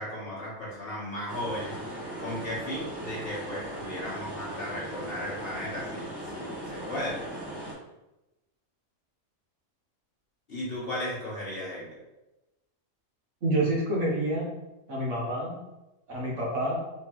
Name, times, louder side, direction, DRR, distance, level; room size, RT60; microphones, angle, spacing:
voice 1, 0.0-1.8 2.2-7.3 10.5-12.0, left 1 dB, 45° left, -7 dB, 1.5 m, -35 dB
sound 1, 1.3-7.7, right 1 dB, 20° right, 0.9 m, -38 dB
voice 2, 13.4-14.4 14.9-15.6 16.1-16.8, right 1 dB, 60° right, -3 dB, 1.3 m, -28 dB
3.7 x 3.7 x 3.0 m, 0.99 s
omnidirectional pair, 1.5 m